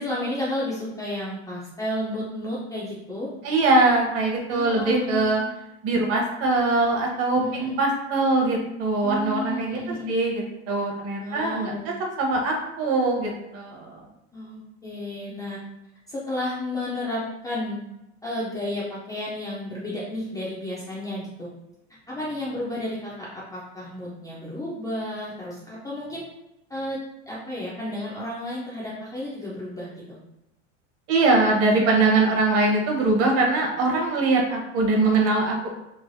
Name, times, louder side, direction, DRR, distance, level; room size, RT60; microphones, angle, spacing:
voice 1, 0.0-3.3 4.5-5.5 7.3-7.8 9.0-10.1 11.2-11.9 14.3-15.6 16.1-17.8 18.2-21.5 22.1-26.2 26.7-27.0 27.3-30.2, left 1 dB, 10° left, -7 dB, 0.3 m, -32 dB
voice 2, 3.4-5.4 5.8-14.0 31.1-35.7, right 2 dB, 45° right, 0 dB, 0.8 m, -22 dB
3.2 x 2.1 x 2.5 m, 0.90 s
supercardioid pair, 120°, 35 cm